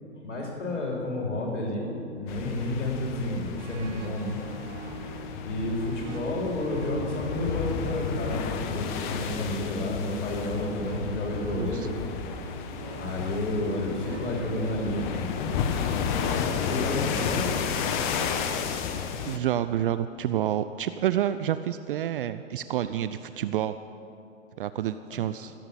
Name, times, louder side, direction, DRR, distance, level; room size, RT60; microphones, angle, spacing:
voice 1, 0.1-4.4 5.4-11.9 13.0-15.3 16.7-17.5 25.1-25.2, left 1 dB, 70° left, -1 dB, 3.4 m, -31 dB
sound 1, 2.3-19.4, left 7 dB, 40° left, 1.1 m, -32 dB
sound 2, 3.6-10.3 11.4-18.7, right 4 dB, 30° right, 1.1 m, -47 dB
sound 3, 8.7-15.8, right 5 dB, 65° right, 1.4 m, -47 dB
voice 2, 11.6-11.9 19.3-23.8 24.6-25.5, right 11 dB, 45° right, 12 dB, 0.4 m, -28 dB
15.5 x 7.8 x 8.3 m, 2.8 s
hypercardioid pair, 120°, 37 cm